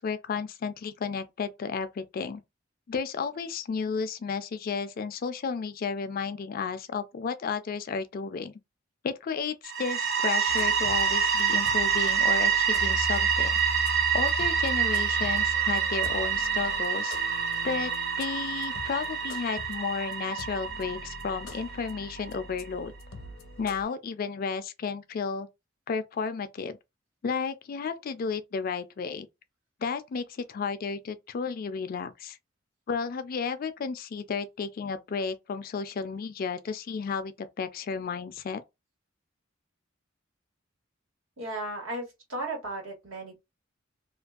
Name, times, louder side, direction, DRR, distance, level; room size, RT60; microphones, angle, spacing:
voice 1, 0.0-2.4 2.9-8.5 9.0-13.6 14.1-17.2 17.6-17.9 18.2-22.9 23.6-25.5 25.9-26.8 27.2-29.3 29.8-32.4 32.9-38.6, left 5 dB, 45° left, 0.3 m, -33 dB
sound 1, 9.6-22.4, right 7 dB, 50° right, 0.5 m, -27 dB
sound 2, 10.5-23.8, left 2 dB, 80° left, 0.6 m, -41 dB
voice 2, 41.4-43.4, right 1 dB, 80° right, 1.4 m, -35 dB
2.5 x 2.2 x 2.3 m
head